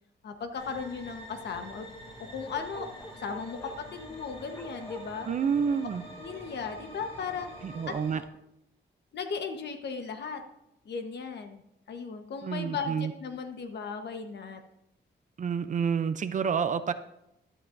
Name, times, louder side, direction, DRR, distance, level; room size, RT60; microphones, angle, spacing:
voice 1, 0.2-1.9 2.2-2.9 3.1-5.3 6.2-7.5 7.9-8.0 9.1-10.4 10.8-11.6 11.9-14.6, left 5 dB, 60° left, 6 dB, 1.2 m, -36 dB
sound 1, 0.5-8.2, equal, 30° left, 4.4 m, -46 dB
Bark, 2.5-3.9 4.5-5.0, right 1 dB, 10° left, 0.9 m, -45 dB
voice 2, 5.3-6.0 7.6-8.2 12.4-13.1 15.4-16.9, right 6 dB, 40° right, 11 dB, 0.5 m, -28 dB
14.0 x 12.0 x 2.6 m, 0.84 s
wide cardioid pair, 175°, 19 cm